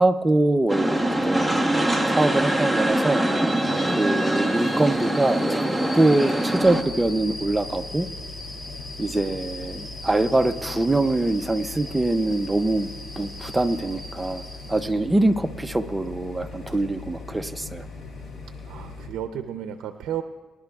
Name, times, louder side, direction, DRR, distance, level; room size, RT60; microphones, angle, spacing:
voice 1, 0.0-1.6 2.1-3.3 3.9-5.7 5.9-8.1 9.0-12.9 13.2-14.4 14.7-17.9, right 2 dB, 15° right, 11 dB, 0.5 m, -23 dB
sound 1, 0.7-6.8, right 1 dB, 5° left, 1.0 m, -23 dB
sound 2, 3.5-15.1 16.5-16.7, left 1 dB, 25° left, 2.0 m, -41 dB
voice 2, 3.6-4.0 14.6-15.1 18.6-20.2, right 10 dB, 85° right, 8 dB, 0.5 m, -34 dB
sound 3, 6.6-19.1, left 3 dB, 55° left, 2.6 m, -40 dB
26.0 x 11.5 x 2.4 m, 1.4 s
cardioid pair, 90°, 0 cm